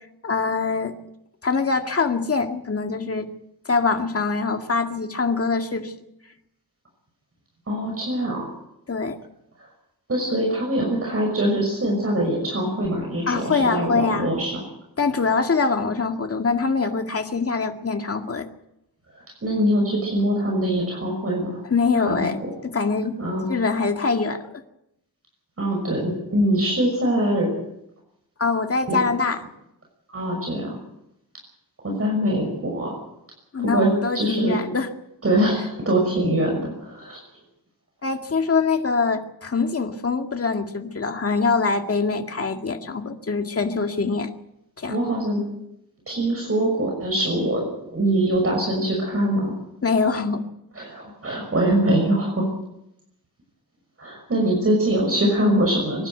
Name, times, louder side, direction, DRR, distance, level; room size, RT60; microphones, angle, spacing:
voice 1, 0.2-1.0 1.4-3.3 3.7-5.9 8.9-9.2 13.3-14.3 15.0-18.5 21.7-23.1 23.5-24.4 28.4-29.4 33.5-34.9 38.0-44.3 44.8-45.0 49.8-50.4, left 4 dB, 40° left, 4 dB, 2.1 m, -23 dB
voice 2, 7.7-8.5 10.1-14.6 19.4-21.6 22.1-22.3 23.2-23.4 25.6-27.5 28.9-29.0 30.1-30.8 31.8-32.9 33.6-34.6 35.2-37.2 44.9-45.4 46.1-47.7 47.9-49.5 50.8-52.5 54.0-56.1, right 1 dB, 40° right, 0 dB, 6.0 m, -23 dB
25.0 x 12.0 x 9.4 m, 0.84 s
wide cardioid pair, 110°, 37 cm